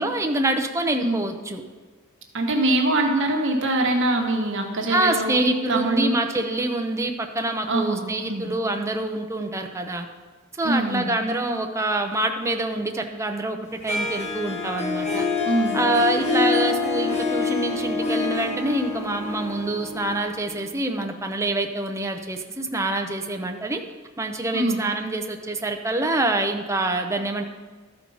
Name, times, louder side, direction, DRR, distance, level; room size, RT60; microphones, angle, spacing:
voice 1, 0.0-1.6 4.9-10.1 10.6-13.6 13.8-15.3 15.7-23.8 24.2-27.4, right 2 dB, 15° right, 4 dB, 0.6 m, -26 dB
voice 2, 2.3-5.4 5.7-6.1 7.7-8.0 8.3-8.5 10.6-11.1 15.4-15.8 24.5-24.8, right 2 dB, 65° right, 2 dB, 1.1 m, -23 dB
Harp, 13.9-20.8, left 4 dB, 35° left, 1.3 m, -26 dB
13.0 x 4.5 x 5.5 m, 1.4 s
head